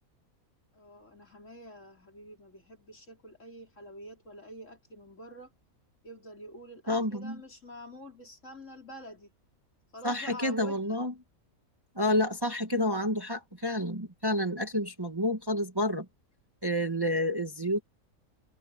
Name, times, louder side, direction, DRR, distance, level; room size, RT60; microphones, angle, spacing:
voice 1, 0.7-5.5 6.0-9.3 9.9-11.0, equal, 55° left, 5.0 m, -47 dB
voice 2, 6.9-7.4 10.0-11.1 12.0-16.1 16.6-17.8, left 1 dB, 15° right, 1.7 m, -29 dB
omnidirectional pair, 1.6 m